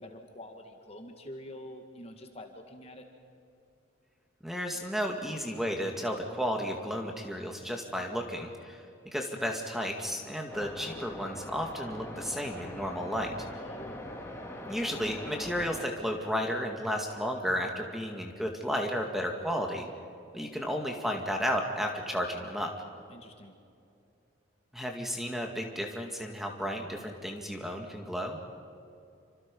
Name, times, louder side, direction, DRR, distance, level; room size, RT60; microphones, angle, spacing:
voice 1, 0.0-3.0 13.5-14.0 23.1-23.5, left 1 dB, 30° left, 4 dB, 1.9 m, -46 dB
voice 2, 4.4-13.3 14.7-19.9 20.3-22.7 24.7-28.4, equal, ahead, 2 dB, 2.1 m, -33 dB
sound 1, 10.5-15.8, left 1 dB, 15° left, 2.4 m, -42 dB
28.0 x 26.0 x 5.4 m, 2.5 s
head